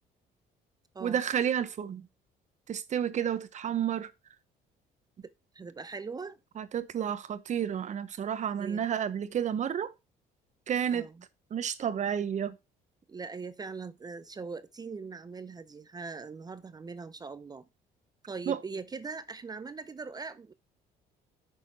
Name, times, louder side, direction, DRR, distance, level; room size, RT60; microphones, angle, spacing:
voice 1, 1.0-2.1 2.7-4.1 6.6-9.9 10.7-11.1 11.5-12.6 18.5-18.6, right 9 dB, 45° right, 1.1 m, -31 dB
voice 2, 5.5-6.4 8.6-8.8 10.9-11.2 13.1-17.7 18.3-20.5, right 4 dB, 25° right, 0.6 m, -41 dB
9.0 x 6.6 x 4.4 m
cardioid pair, 110°, 17 cm